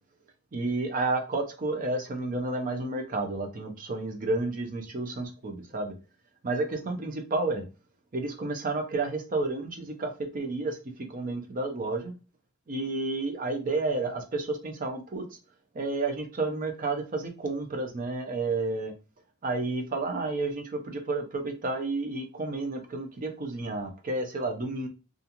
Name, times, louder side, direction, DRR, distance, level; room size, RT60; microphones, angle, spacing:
voice 1, 0.5-5.9 6.4-7.6 8.1-12.1 12.7-15.2 15.7-18.9 19.4-24.9, right 2 dB, 40° right, 4 dB, 0.5 m, -31 dB
2.4 x 2.4 x 2.8 m, 0.31 s
head